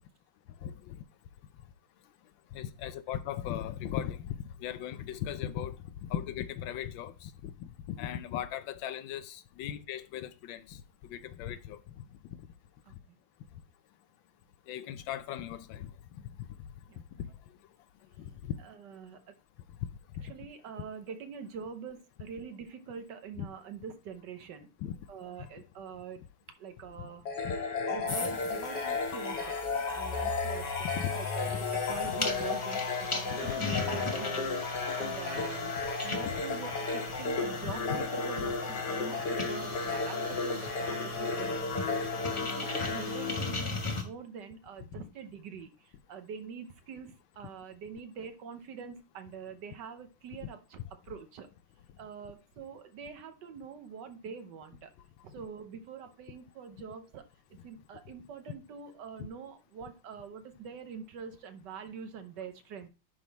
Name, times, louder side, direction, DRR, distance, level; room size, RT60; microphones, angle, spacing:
voice 1, 0.6-1.0 2.5-12.0 14.7-16.7 17.2-17.3 18.2-18.6 20.2-20.3 23.4-23.5 24.8-25.0 25.4-25.5 27.0-27.1 27.4-27.5 30.9-31.1 31.5-31.6 32.0-32.2 33.3-33.9 36.2-36.3 37.6-38.0 38.4-38.5 50.4-50.5 59.2-59.3, left 10 dB, 75° left, 1.4 m, -38 dB
voice 2, 12.8-13.2 16.9-17.0 18.6-19.3 20.2-24.7 25.1-26.3 26.6-29.6 29.9-30.9 31.1-35.7 36.0-41.9 42.4-51.5 52.0-54.9 55.2-62.9, right 6 dB, 65° right, 1.3 m, -45 dB
sound 1, 27.3-44.0, left 4 dB, 55° left, 1.9 m, -34 dB
sound 2, 28.1-44.0, left 2 dB, 20° left, 0.8 m, -38 dB
10.5 x 3.7 x 4.1 m
omnidirectional pair, 2.3 m